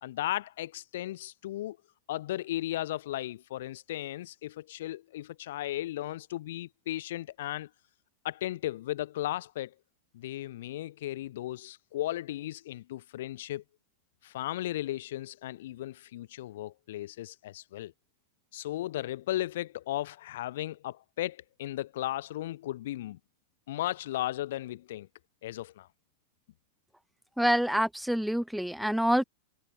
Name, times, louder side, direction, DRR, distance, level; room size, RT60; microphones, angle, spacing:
voice 1, 0.0-1.8 2.1-7.7 8.2-9.7 10.1-13.6 14.2-17.9 18.5-23.2 23.7-25.1 25.4-25.9, left 14 dB, 55° left, 1.2 m, -35 dB
voice 2, 27.4-29.2, equal, ahead, 0.7 m, -26 dB
figure-of-eight pair, 90°, 0 cm